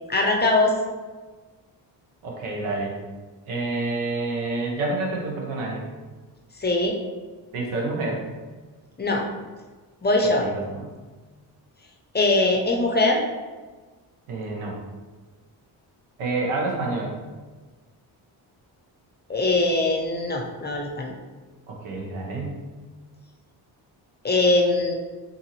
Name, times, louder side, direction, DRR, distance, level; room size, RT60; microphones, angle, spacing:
voice 1, 0.1-0.7 6.6-7.0 9.0-9.3 10.0-10.5 12.1-13.2 19.3-21.1 24.2-24.9, left 2 dB, 20° left, 1 dB, 0.6 m, -21 dB
voice 2, 2.2-2.9 3.5-5.9 7.5-8.2 10.4-10.9 14.3-14.8 16.2-17.1 21.7-22.6, right 2 dB, 85° right, -1 dB, 0.9 m, -28 dB
3.8 x 2.6 x 2.9 m, 1.3 s
supercardioid pair, 60°, 48 cm